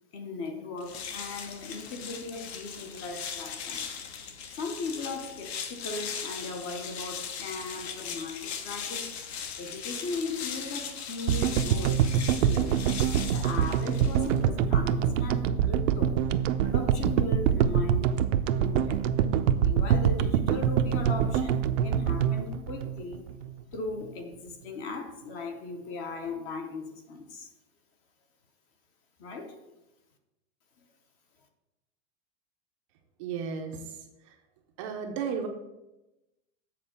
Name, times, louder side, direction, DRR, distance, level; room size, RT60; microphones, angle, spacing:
voice 1, 0.1-3.8 4.6-9.1 9.6-12.0 12.5-12.8 13.2-16.2 16.6-18.1 18.4-19.0 19.6-23.3 23.7-27.5 29.2-29.6, left 3 dB, 25° left, 0.6 m, -38 dB
sound 1, 0.8-14.5, left 7 dB, 60° left, 1.1 m, -39 dB
sound 2, 11.3-23.6, right 8 dB, 80° right, 0.7 m, -25 dB
voice 2, 33.2-34.0 34.8-35.5, right 6 dB, 25° right, 0.5 m, -33 dB
7.7 x 4.4 x 7.1 m
supercardioid pair, 180°, 37 cm